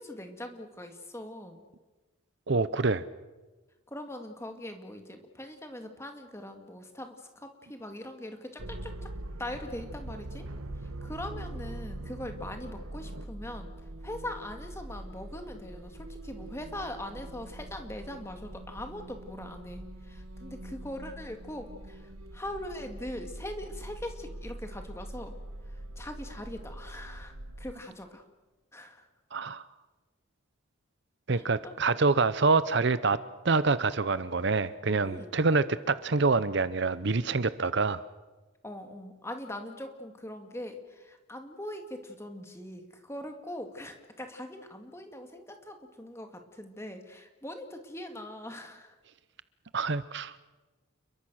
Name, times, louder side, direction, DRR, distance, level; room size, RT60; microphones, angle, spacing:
voice 1, 0.0-1.6 3.9-9.1 9.4-10.5 10.7-13.7 14.0-25.4 25.6-28.2 28.7-29.1 31.3-31.7 35.0-35.3 38.6-49.0, left 1 dB, 10° left, 5 dB, 2.3 m, -41 dB
voice 2, 2.5-3.0 29.3-29.6 31.3-33.2 33.4-38.0 49.7-50.3, right 4 dB, 55° right, 15 dB, 0.7 m, -26 dB
sound 1, 8.6-27.7, right 1 dB, 85° right, 1.5 m, -43 dB
29.5 x 22.5 x 6.4 m, 1.2 s
head